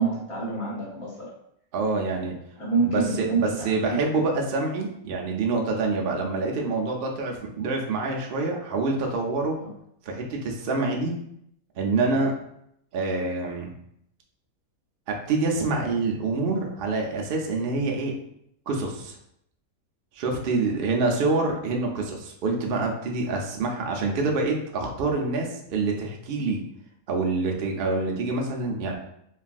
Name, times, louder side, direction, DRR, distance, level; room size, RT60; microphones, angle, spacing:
voice 1, 0.0-1.3 2.6-4.0 9.6-9.7, right 4 dB, 30° left, -5 dB, 0.7 m, -27 dB
voice 2, 1.7-2.4 2.8-9.6 10.1-11.2 11.8-12.3 12.9-13.7 15.1-18.1 18.7-19.2 20.2-26.6 27.1-28.9, right 3 dB, 80° right, 1 dB, 0.5 m, -26 dB
3.3 x 2.3 x 2.4 m, 0.73 s
omnidirectional pair, 1.5 m